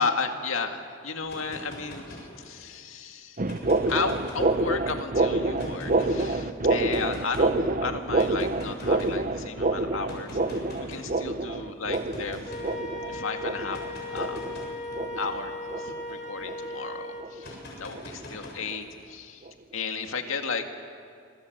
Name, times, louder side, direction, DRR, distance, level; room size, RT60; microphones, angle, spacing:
voice 1, 0.0-3.4 3.9-6.4 6.7-12.4 13.1-13.8 14.1-14.4 15.0-20.7, left 4 dB, 85° left, 5 dB, 2.1 m, -33 dB
sound 1, 1.2-2.7 3.3-4.9 5.6-6.3 6.9-7.5 8.1-9.2 10.1-11.1 11.9-12.7 13.6-16.4 17.4-18.9, left 1 dB, 50° left, 7.2 m, -43 dB
sound 2, 3.4-16.2 16.4-16.8 17.2-17.5 17.9-18.1 18.7-18.8 19.5-19.6, right 2 dB, 40° right, 0.8 m, -27 dB
Wind instrument woodwind instrument, 12.4-17.3, left 1 dB, 35° left, 2.2 m, -37 dB
26.0 x 25.0 x 8.0 m, 2.3 s
head